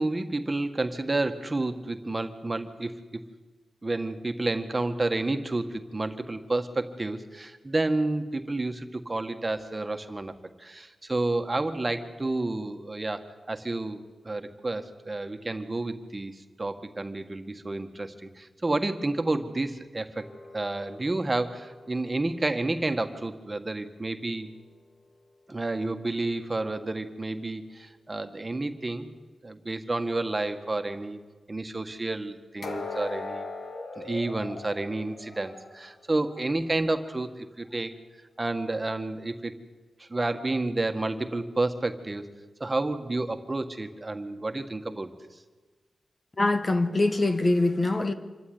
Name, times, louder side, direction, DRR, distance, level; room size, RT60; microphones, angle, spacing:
voice 1, 0.0-3.2 3.8-10.3 10.6-20.3 20.5-24.5 25.5-29.1 29.4-31.2 31.5-33.5 34.0-37.9 38.4-39.5 40.0-42.3 42.6-45.1, right 2 dB, 30° right, 1.8 m, -30 dB
sound 1, 20.2-23.3 32.6-36.5 36.9-37.1 37.7-37.8, left 3 dB, 70° left, 2.2 m, -41 dB
voice 2, 46.4-48.1, left 2 dB, 30° left, 1.5 m, -23 dB
26.5 x 13.0 x 9.6 m
cardioid pair, 70°, 0 cm